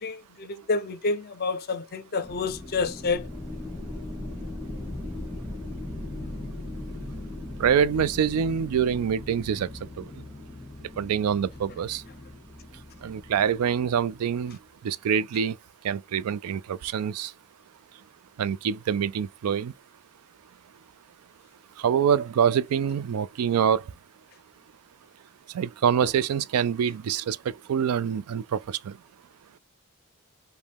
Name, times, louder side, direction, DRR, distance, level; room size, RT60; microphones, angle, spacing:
voice 1, 0.0-3.3 26.0-26.1, left 4 dB, 45° left, 0.5 m, -29 dB
sound 1, 2.2-14.5, left 1 dB, 5° right, 1.3 m, -39 dB
voice 2, 7.6-9.7 10.0-10.1 11.0-12.0 13.0-14.6 14.8-15.6 15.8-17.3 18.4-19.7 21.8-23.8 25.5-29.0, right 8 dB, 90° right, 0.4 m, -25 dB
5.0 x 2.2 x 3.4 m
head